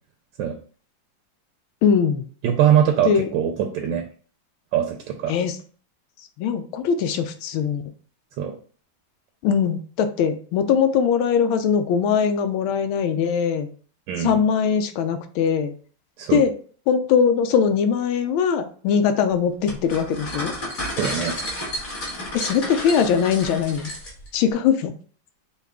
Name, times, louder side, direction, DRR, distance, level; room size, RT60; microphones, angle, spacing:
voice 1, 1.8-2.3 3.1-3.3 5.3-5.6 6.4-7.8 9.4-13.7 14.2-15.7 16.3-16.5 16.9-20.5 22.3-23.9 24.3-24.9, left 7 dB, 85° left, 9 dB, 1.4 m, -21 dB
voice 2, 2.4-4.1 4.7-5.3 8.4-8.5 14.1-14.4 16.2-16.4 20.9-21.4, right 9 dB, 75° right, 4 dB, 1.2 m, -22 dB
sound 1, 19.7-24.3, left 1 dB, 45° left, 1.9 m, -31 dB
5.5 x 2.4 x 3.6 m, 0.43 s
omnidirectional pair, 2.2 m